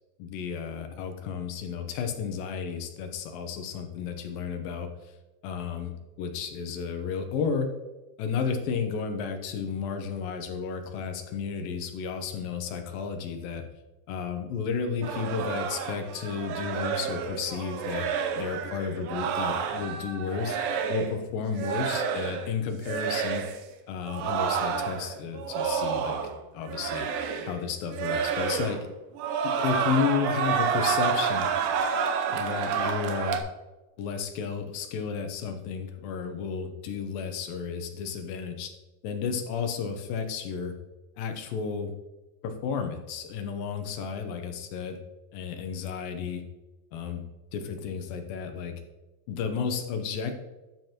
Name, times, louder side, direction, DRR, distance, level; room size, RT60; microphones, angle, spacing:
voice 1, 0.2-4.9 5.4-5.9 6.2-7.7 8.2-13.6 14.1-18.1 18.4-20.6 20.9-23.5 23.9-26.2 26.5-27.1 27.5-28.8 29.4-31.5 32.3-33.4 34.0-38.7 39.0-40.7 41.2-41.9 42.4-45.0 45.3-46.4 46.9-47.2 47.5-48.8 49.3-50.3, left 6 dB, 90° left, 6 dB, 2.7 m, -32 dB
sound 1, 15.0-21.2 21.6-22.5 22.8-23.6 24.1-26.4 26.7-27.6 27.9-28.9 29.2-33.4, right 7 dB, 90° right, 2.5 m, -29 dB
12.0 x 7.4 x 3.0 m, 1.1 s
omnidirectional pair, 4.0 m